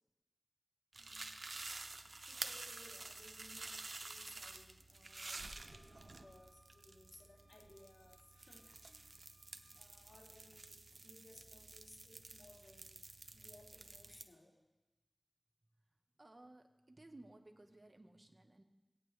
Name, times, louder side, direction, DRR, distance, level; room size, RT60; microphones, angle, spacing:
sound 1, 0.9-14.2, right 3 dB, 85° right, 0.6 m, -50 dB
voice 1, 1.0-1.5 1.9-9.2 9.7-13.0 13.3-14.5, left 1 dB, 90° left, -2 dB, 2.2 m, -63 dB
Wind instrument woodwind instrument, 5.1-9.8, equal, 60° left, 3.2 m, -72 dB
voice 2, 16.2-18.6, right 2 dB, 50° right, 5 dB, 1.1 m, -59 dB
17.5 x 9.1 x 3.2 m, 1.1 s
wide cardioid pair, 40°, 0 cm